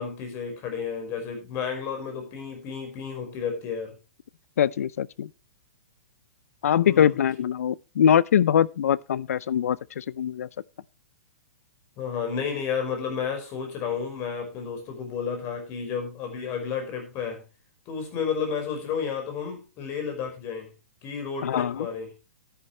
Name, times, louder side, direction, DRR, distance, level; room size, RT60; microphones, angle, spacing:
voice 1, 0.0-3.9 6.8-7.2 12.0-17.4 17.9-20.7 21.0-22.1, left 6 dB, 30° left, 5.2 m, -32 dB
voice 2, 4.6-5.3 6.6-10.5 21.4-21.9, left 9 dB, 75° left, 0.5 m, -23 dB
12.0 x 10.5 x 3.2 m
hypercardioid pair, 140°, 8 cm